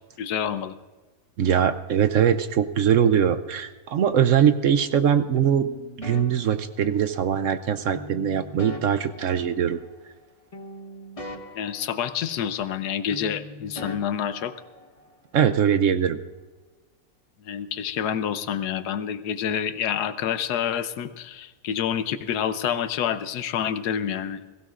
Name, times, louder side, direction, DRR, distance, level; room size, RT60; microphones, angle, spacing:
voice 1, 0.2-0.7 11.5-14.5 17.4-24.4, left 9 dB, 85° left, 11 dB, 1.3 m, -28 dB
voice 2, 1.4-5.7 6.0-9.8 15.3-16.2, right 8 dB, 65° right, 11 dB, 0.9 m, -21 dB
sound 1, 5.4-7.3 7.9-10.2 10.5-12.8 13.1-15.2, left 1 dB, 25° left, 1.1 m, -41 dB
22.5 x 16.0 x 2.5 m, 1.3 s
omnidirectional pair, 1.7 m